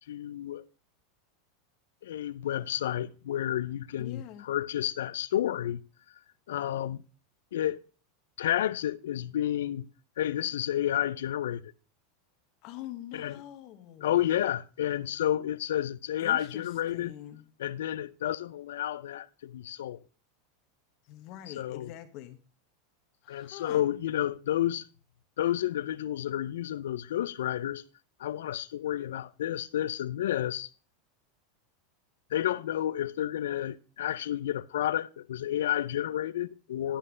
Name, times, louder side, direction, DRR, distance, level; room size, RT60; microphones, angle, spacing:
voice 1, 0.1-0.6 2.0-5.8 6.5-7.0 7.5-7.8 8.4-9.8 10.2-11.7 13.1-13.4 14.0-17.1 17.6-20.0 21.5-21.9 23.3-24.9 25.4-27.8 28.2-30.7 32.3-37.0, left 12 dB, 85° left, 0.5 m, -30 dB
voice 2, 4.0-4.5 12.6-14.2 16.2-17.4 21.0-22.4 23.2-23.9, left 13 dB, 50° left, 1.2 m, -44 dB
11.5 x 5.5 x 5.0 m
supercardioid pair, 130°, 0 cm